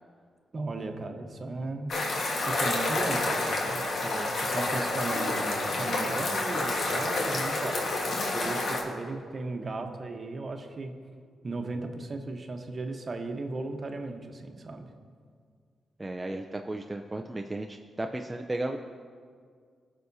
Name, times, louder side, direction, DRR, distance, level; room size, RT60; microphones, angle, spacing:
voice 1, 0.5-2.1 2.5-11.0 11.4-14.9, right 3 dB, 45° right, 5 dB, 1.1 m, -36 dB
sound 1, 1.9-8.8, left 2 dB, 65° left, 1.5 m, -29 dB
voice 2, 16.0-18.8, right 2 dB, 20° right, 3 dB, 0.5 m, -34 dB
17.5 x 6.3 x 2.8 m, 2.1 s
supercardioid pair, 50°, 0 cm